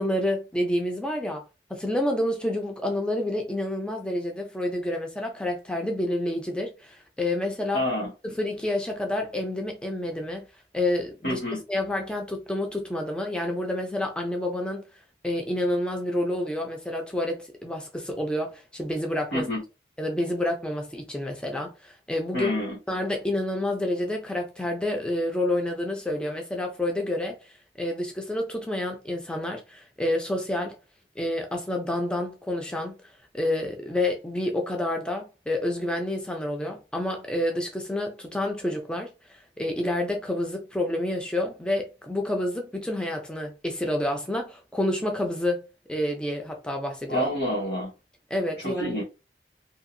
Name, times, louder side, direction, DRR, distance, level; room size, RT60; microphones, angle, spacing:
voice 1, 0.0-1.4 1.7-7.8 8.4-10.5 10.7-11.4 11.7-14.8 15.2-19.4 20.0-22.5 22.9-27.4 27.8-30.8 31.2-32.9 33.3-45.6 45.9-47.2 48.3-49.0, left 1 dB, 5° left, 0.4 m, -28 dB
voice 2, 7.7-8.1 11.2-11.6 19.3-19.6 22.3-22.8 47.1-47.9 48.6-49.0, left 1 dB, 60° left, 1.1 m, -28 dB
2.7 x 2.4 x 2.5 m
head